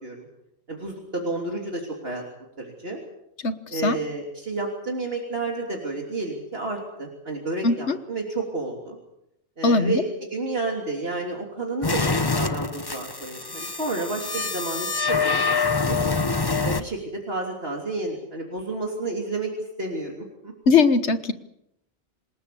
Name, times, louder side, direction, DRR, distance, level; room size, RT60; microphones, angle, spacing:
voice 1, 0.7-2.2 2.6-3.0 3.7-9.0 9.6-16.1 16.6-19.5 19.8-20.5, right 3 dB, 55° right, 0 dB, 3.6 m, -31 dB
voice 2, 3.4-4.0 7.6-8.0 9.6-10.0 20.7-21.3, left 4 dB, 75° left, 11 dB, 1.6 m, -20 dB
sound 1, 11.8-16.8, left 4 dB, 20° left, 1.0 m, -25 dB
27.5 x 18.5 x 7.0 m, 0.81 s
omnidirectional pair, 1.2 m